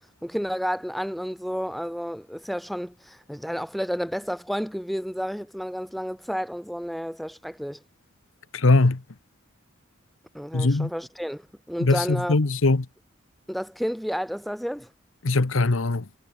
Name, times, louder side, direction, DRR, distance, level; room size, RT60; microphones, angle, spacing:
voice 1, 0.2-7.8 10.3-11.4 11.7-12.4 13.5-14.9, equal, ahead, 3.4 m, -31 dB
voice 2, 8.5-9.0 10.5-10.9 11.8-12.9 15.2-16.0, left 2 dB, 80° left, 1.0 m, -21 dB
head